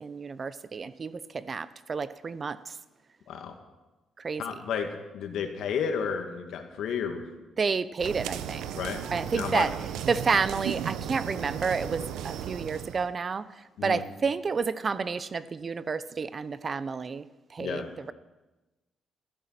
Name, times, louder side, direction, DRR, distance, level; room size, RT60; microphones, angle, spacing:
voice 1, 0.0-2.6 4.2-4.4 7.6-8.7 9.1-9.7 10.1-13.4 13.8-17.2 17.5-17.8, right 5 dB, 40° right, 16 dB, 0.8 m, -30 dB
voice 2, 4.4-7.3 8.7-9.0 9.3-9.7 13.8-14.0 17.6-17.9, left 7 dB, 75° left, 5 dB, 2.3 m, -32 dB
sound 1, 8.0-13.1, right 9 dB, 90° right, 0.9 m, -35 dB
16.5 x 14.0 x 6.0 m, 1.1 s
cardioid pair, 90°, 0 cm